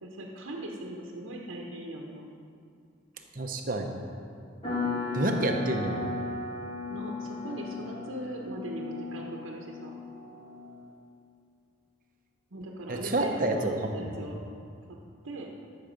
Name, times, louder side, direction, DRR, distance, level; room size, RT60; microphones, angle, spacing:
voice 1, 0.0-2.3 6.9-10.0 12.5-14.4 14.9-15.0 15.2-15.5, right 1 dB, 85° right, -1 dB, 1.1 m, -39 dB
voice 2, 3.3-4.0 5.1-6.1 12.9-14.0, right 2 dB, 45° right, 3 dB, 0.9 m, -29 dB
sound 1, 4.6-10.8, left 3 dB, 25° left, 2.4 m, -36 dB
13.5 x 6.6 x 5.2 m, 2.4 s
head